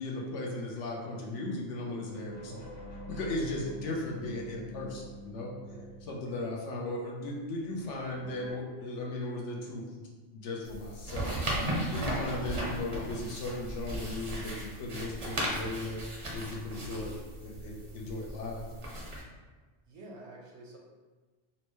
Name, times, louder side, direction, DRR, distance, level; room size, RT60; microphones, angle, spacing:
voice 1, 0.0-2.7 3.1-5.5 6.1-16.0 16.3-17.2 17.4-18.7, left 2 dB, 70° left, -2 dB, 0.9 m, -37 dB
sound 1, 2.0-6.9 7.4-8.5, right 1 dB, 90° left, 1.7 m, -46 dB
voice 2, 5.6-6.0 19.9-20.8, right 2 dB, 65° right, -1 dB, 0.8 m, -50 dB
sound 2, 10.6-19.2, right 1 dB, 40° right, 0.5 m, -36 dB
4.1 x 2.2 x 3.0 m, 1.3 s
omnidirectional pair, 1.3 m